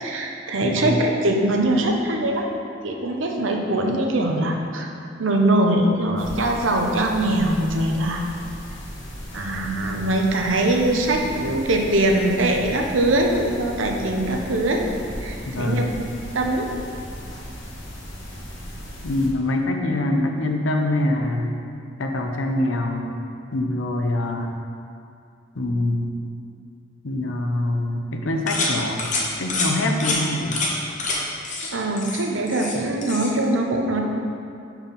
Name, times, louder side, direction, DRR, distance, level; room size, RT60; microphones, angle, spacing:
voice 1, 0.0-2.5 2.8-4.9 5.2-8.2 9.3-14.8 15.2-15.9 16.3-16.7 31.7-34.0, right 1 dB, 90° right, 2 dB, 0.8 m, -22 dB
voice 2, 0.6-1.0 15.5-15.9 19.0-21.6 22.0-23.1 23.5-24.5 25.5-26.1 27.0-30.6, left 1 dB, 85° left, 3 dB, 0.7 m, -24 dB
sound 1, 6.2-19.3, equal, 70° left, 1.3 m, -37 dB
sound 2, 28.5-28.7 29.0-29.2 29.5-29.7 30.0-30.2 30.5-30.7 31.0-31.2 31.4-31.7 32.0-32.8 33.0-33.3, left 3 dB, 40° left, 1.0 m, -26 dB
5.5 x 4.6 x 5.3 m, 2.5 s
head